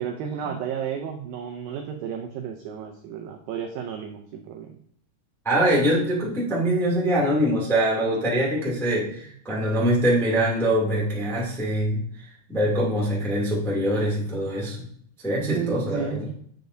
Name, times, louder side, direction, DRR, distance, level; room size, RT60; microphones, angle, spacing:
voice 1, 0.0-4.8 15.4-16.3, right 8 dB, 85° right, 5 dB, 2.0 m, -32 dB
voice 2, 5.4-12.0 12.5-14.9 15.2-16.3, right 1 dB, ahead, -5 dB, 0.9 m, -23 dB
9.0 x 6.8 x 2.6 m, 0.63 s
omnidirectional pair, 4.8 m